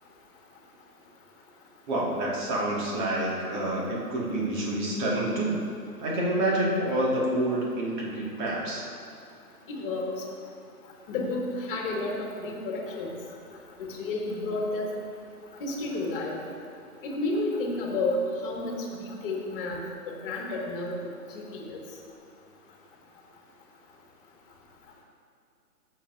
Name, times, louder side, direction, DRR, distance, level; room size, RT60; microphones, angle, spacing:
voice 1, 1.9-5.6 6.0-8.8, right 1 dB, 30° right, -4 dB, 2.1 m, -28 dB
voice 2, 9.8-10.2 11.1-13.1 13.8-14.9 15.6-16.4 17.0-19.8 20.1-21.1 21.3-21.8, left 2 dB, 35° left, -1 dB, 1.9 m, -31 dB
16.0 x 7.1 x 2.7 m, 2.5 s
hypercardioid pair, 140°, 46 cm